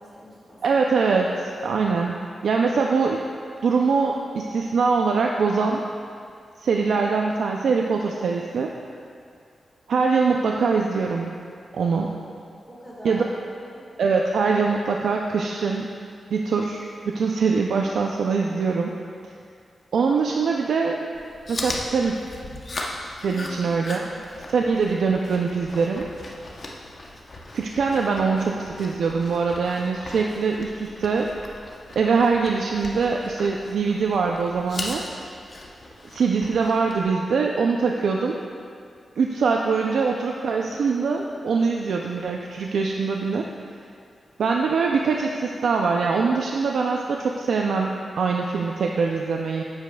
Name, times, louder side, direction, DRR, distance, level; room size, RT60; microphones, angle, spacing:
voice 1, 0.0-0.6 12.7-13.8 23.2-24.2, equal, 10° right, -7 dB, 1.7 m, -44 dB
voice 2, 0.6-2.1 2.4-3.2 3.6-5.8 6.6-8.7 9.9-11.3 11.7-12.1 13.0-13.2 14.0-15.9 16.3-16.8 17.1-18.9 19.9-21.0 21.5-22.3 23.2-24.1 24.5-26.1 27.5-31.3 32.0-35.0 36.1-38.4 39.2-43.5 44.4-49.6, right 4 dB, 80° right, 1 dB, 0.4 m, -23 dB
Chewing mastication, 21.1-37.0, left 2 dB, 40° left, 0.7 m, -38 dB
10.0 x 8.0 x 2.3 m, 2.3 s
wide cardioid pair, 175°, 0 cm